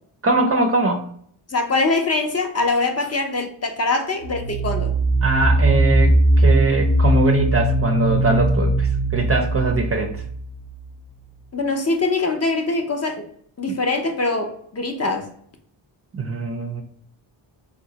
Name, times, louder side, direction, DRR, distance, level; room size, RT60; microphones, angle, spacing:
voice 1, 0.2-1.0 5.2-10.1 13.7-13.8 16.1-16.8, right 2 dB, 30° right, 3 dB, 0.4 m, -21 dB
voice 2, 1.5-4.9 11.5-13.2 13.6-15.3, left 3 dB, 30° left, 4 dB, 0.6 m, -23 dB
sound 1, 4.2-10.9, right 1 dB, 80° left, 1.1 m, -19 dB
3.8 x 2.1 x 2.7 m, 0.64 s
cardioid pair, 60°, 49 cm